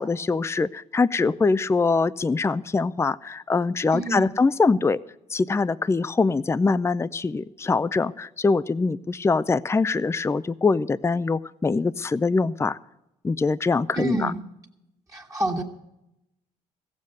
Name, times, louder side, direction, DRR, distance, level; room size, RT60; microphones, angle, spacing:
voice 1, 0.0-5.0 5.3-12.8 13.2-14.3, left 4 dB, 15° left, 16 dB, 0.4 m, -23 dB
voice 2, 3.9-4.3 13.9-14.4 15.1-15.6, right 2 dB, 20° right, 0 dB, 1.7 m, -28 dB
15.0 x 7.5 x 7.7 m, 0.87 s
supercardioid pair, 55°, 16 cm